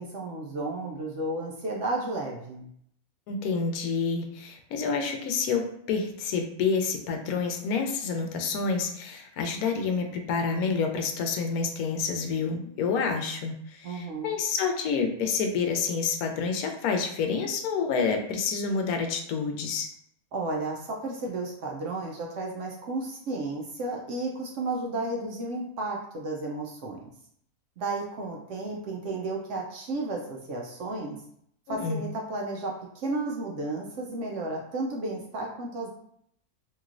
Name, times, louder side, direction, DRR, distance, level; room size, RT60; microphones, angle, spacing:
voice 1, 0.0-2.7 13.8-14.4 20.3-27.1 27.8-31.2 31.7-35.9, right 2 dB, 65° right, -1 dB, 0.8 m, -33 dB
voice 2, 3.3-19.9 31.7-32.0, left 5 dB, 80° left, 4 dB, 1.0 m, -28 dB
3.0 x 2.9 x 2.4 m, 0.70 s
omnidirectional pair, 1.6 m